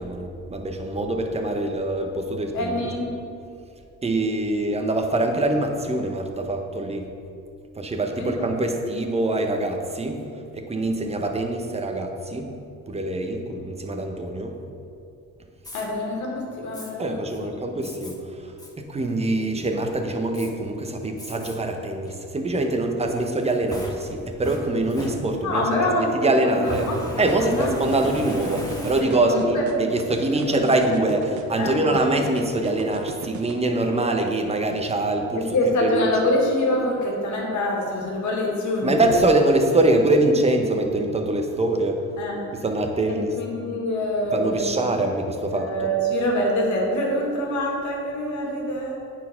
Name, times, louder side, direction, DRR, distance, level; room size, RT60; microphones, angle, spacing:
voice 1, 0.0-2.9 4.0-7.1 7.8-10.2 10.5-12.5 12.9-14.5 17.0-18.3 18.8-25.7 26.0-26.9 27.2-35.5 35.8-36.1 38.8-42.0 42.6-43.3 44.3-45.9, right 2 dB, 20° right, 4 dB, 1.0 m, -24 dB
voice 2, 2.5-3.1 8.2-8.5 15.7-17.3 17.7-17.8 25.4-27.7 29.0-29.7 30.5-30.6 31.6-31.9 35.4-39.2 42.2-42.4 43.1-44.7 45.5-48.9, left 1 dB, 70° left, -1 dB, 1.9 m, -25 dB
Fire, 15.6-15.9 16.7-16.9 17.8-18.1 18.6-18.7 19.2-19.7 20.3-20.5 21.2-21.6 22.0-22.1 23.2-25.7 26.6-29.4, equal, 10° left, 1.4 m, -36 dB
sound 1, 27.3-33.5, right 7 dB, 70° right, 1.0 m, -35 dB
9.0 x 4.5 x 5.8 m, 2.5 s
cardioid pair, 90°, 30 cm